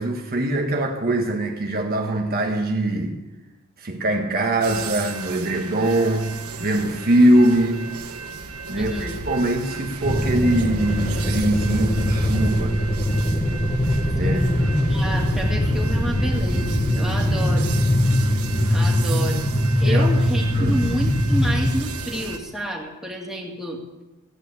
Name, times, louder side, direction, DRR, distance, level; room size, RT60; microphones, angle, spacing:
voice 1, 0.0-3.2 3.8-7.9 8.7-12.8 14.1-14.4 19.9-20.1 20.5-20.8, right 1 dB, 45° right, 3 dB, 1.3 m, -22 dB
sound 1, 4.6-22.4, right 4 dB, 75° right, 1.4 m, -35 dB
voice 2, 8.7-9.2 14.2-14.6 14.9-17.7 18.7-19.4 19.8-23.8, right 1 dB, ahead, -1 dB, 2.4 m, -29 dB
sound 2, 10.0-21.7, left 1 dB, 20° left, 1.3 m, -21 dB
15.0 x 9.2 x 8.4 m, 1.1 s
head